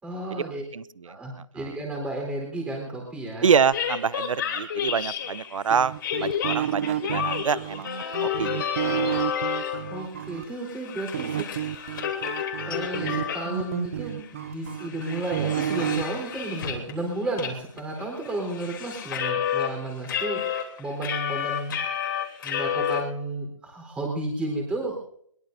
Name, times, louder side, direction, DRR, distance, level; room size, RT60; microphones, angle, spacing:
voice 1, 0.0-0.6 1.0-3.5 9.9-11.4 12.7-20.4 20.8-22.0 22.4-25.0, right 2 dB, 5° right, 0 dB, 4.0 m, -32 dB
voice 2, 0.7-1.2 1.6-1.7 3.4-5.9 6.2-7.9 8.2-8.6, right 6 dB, 65° right, 19 dB, 0.8 m, -26 dB
sound 1, 3.7-5.6 6.0-10.0 10.3-13.8 14.2-14.3 14.7-16.9 17.4-17.5 17.8-19.7 20.0-23.0, left 8 dB, 40° left, 3.2 m, -30 dB
sound 2, 5.7-10.4 11.1-16.0, right 10 dB, 25° right, 0.5 m, -30 dB
22.0 x 21.5 x 2.7 m, 0.67 s
hypercardioid pair, 165°, 18 cm